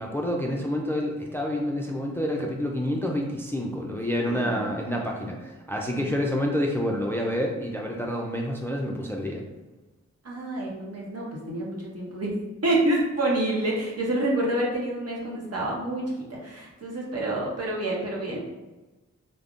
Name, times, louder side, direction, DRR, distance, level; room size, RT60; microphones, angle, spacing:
voice 1, 0.0-9.4, equal, 10° left, 0 dB, 0.4 m, -28 dB
voice 2, 4.2-4.7 10.2-12.3 12.6-16.0 16.3-18.4, right 1 dB, 50° right, -3 dB, 0.9 m, -28 dB
3.4 x 2.1 x 2.4 m, 1.1 s
cardioid pair, 50°, 31 cm